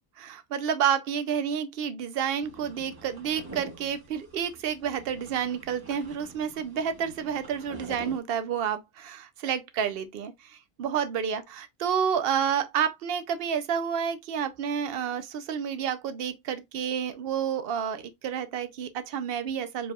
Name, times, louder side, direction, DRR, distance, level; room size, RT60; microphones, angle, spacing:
voice 1, 0.2-19.9, right 8 dB, 60° right, 0.8 m, -30 dB
sound 1, 2.4-8.2, right 2 dB, 20° right, 1.5 m, -46 dB
4.8 x 3.3 x 2.3 m
omnidirectional pair, 1.2 m